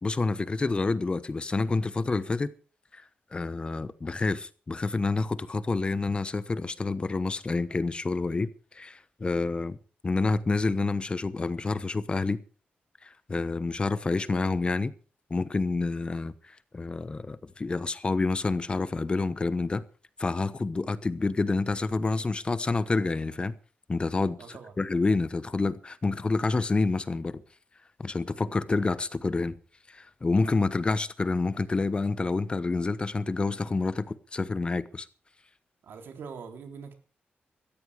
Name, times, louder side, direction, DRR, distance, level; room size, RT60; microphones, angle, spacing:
voice 1, 0.0-2.5 2.9-3.0 3.3-9.8 10.0-12.4 13.0-14.9 15.3-19.8 20.2-23.5 23.9-27.4 28.0-29.6 29.9-35.1, left 3 dB, 30° left, 1.0 m, -28 dB
voice 2, 24.4-24.7 35.8-36.9, right 6 dB, 80° right, 3.3 m, -43 dB
17.0 x 14.0 x 4.8 m
wide cardioid pair, 110°, 4 cm